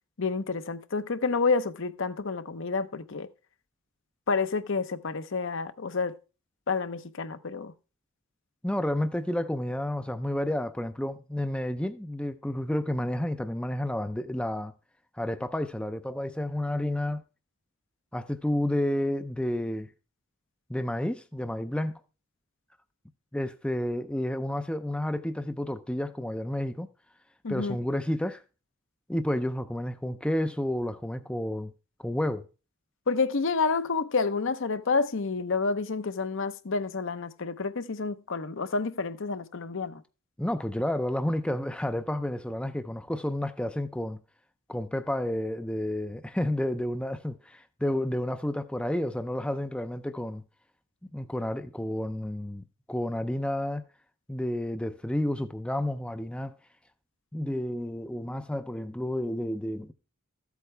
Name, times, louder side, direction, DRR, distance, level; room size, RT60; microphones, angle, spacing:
voice 1, 0.2-3.3 4.3-6.1 6.7-7.7 27.4-27.8 33.1-40.0, left 4 dB, 60° left, 0.8 m, -29 dB
voice 2, 8.6-14.7 15.2-17.2 18.1-19.9 20.7-22.0 23.3-26.9 27.5-28.4 29.1-31.7 32.0-32.5 40.4-44.2 44.7-50.4 51.0-53.8 54.3-56.5 57.3-59.9, left 1 dB, 5° left, 0.5 m, -30 dB
14.0 x 8.2 x 3.3 m
head